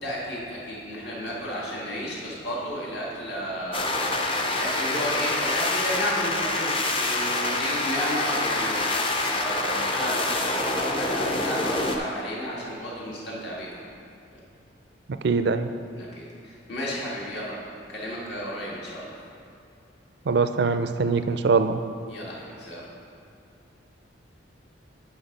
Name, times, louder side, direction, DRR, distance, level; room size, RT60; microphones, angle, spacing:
voice 1, 0.0-3.9 4.5-8.8 9.3-13.8 14.3-14.4 15.9-19.2 22.1-22.9, equal, 60° left, -5 dB, 2.0 m, -33 dB
sound 1, 3.7-12.0, left 2 dB, 30° left, 0.6 m, -26 dB
voice 2, 15.2-15.7 20.3-21.8, right 4 dB, 60° right, 10 dB, 0.4 m, -22 dB
10.0 x 4.9 x 5.3 m, 2.5 s
head